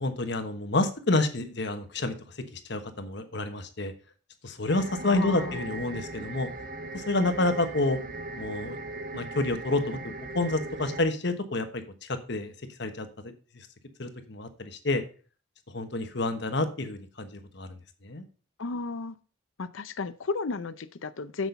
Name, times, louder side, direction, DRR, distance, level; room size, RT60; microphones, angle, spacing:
voice 1, 0.0-2.1 2.5-3.9 4.4-6.5 6.9-8.0 8.3-8.8 9.1-12.5 12.8-13.7 14.0-15.0 15.7-17.7 18.0-18.2, left 2 dB, 55° left, 8 dB, 1.2 m, -29 dB
sound 1, 4.7-11.0, right 2 dB, 45° right, 0.7 m, -39 dB
voice 2, 5.0-5.6 18.6-19.2 19.6-21.5, left 4 dB, 75° left, 12 dB, 0.6 m, -33 dB
8.2 x 6.1 x 5.3 m, 0.38 s
head